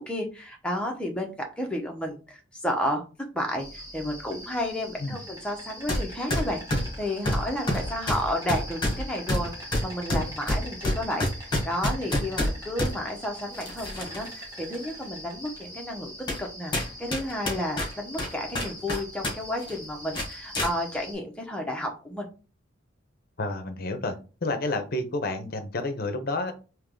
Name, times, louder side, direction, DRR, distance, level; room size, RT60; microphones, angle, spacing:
voice 1, 0.0-3.0 3.3-6.6 7.0-16.1 16.4-16.7 17.0-22.3, left 1 dB, 5° left, 1 dB, 0.8 m, -32 dB
Insect, 3.6-21.1, equal, 20° right, 1.3 m, -43 dB
sound 1, 5.9-6.0 6.3-12.9 13.6-14.3 14.7-14.8 15.6-15.7 16.3-16.5 16.7-19.3 19.6-19.8 20.1-20.7, left 1 dB, 25° left, 1.3 m, -27 dB
voice 2, 23.4-24.1 24.4-26.5, left 2 dB, 50° left, 7 dB, 0.7 m, -30 dB
3.5 x 2.9 x 3.7 m, 0.33 s
head